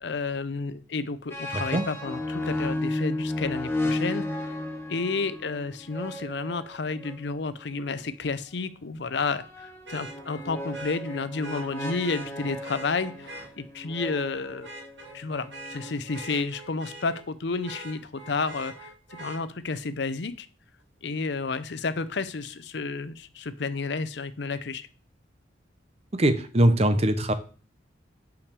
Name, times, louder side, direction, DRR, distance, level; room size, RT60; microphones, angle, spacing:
voice 1, 0.0-4.3 4.9-14.7 15.1-18.9 19.2-20.5 21.0-24.9, left 4 dB, 65° left, 14 dB, 0.6 m, -31 dB
sound 1, 1.3-8.0 9.1-16.4, left 1 dB, 15° left, 1.3 m, -34 dB
voice 2, 1.5-1.9 26.1-27.3, right 1 dB, 35° right, 10 dB, 0.8 m, -22 dB
Vehicle horn car horn honking, 7.0-7.1 9.9-13.5 14.0-14.3 14.6-17.2 17.6-19.4 21.2-21.3, right 1 dB, 80° right, 2.1 m, -43 dB
5.8 x 5.1 x 6.7 m, 0.38 s
head